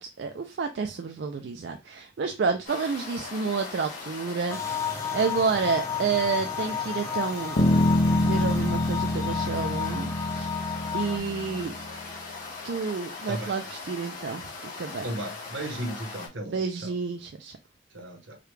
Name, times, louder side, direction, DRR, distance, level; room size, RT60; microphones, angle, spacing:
voice 1, 0.0-7.6 8.1-10.6 10.9-11.8 12.6-15.1 16.5-17.5, right 5 dB, 60° right, 0.4 m, -30 dB
sound 1, 2.6-16.3, left 4 dB, 45° left, 1.6 m, -40 dB
sound 2, 4.5-11.2, left 8 dB, 15° left, 0.5 m, -33 dB
Bass guitar, 7.6-12.0, left 1 dB, 65° left, 0.7 m, -26 dB
voice 2, 15.0-16.9 17.9-18.4, right 1 dB, 80° right, 1.1 m, -35 dB
4.9 x 2.3 x 3.2 m
head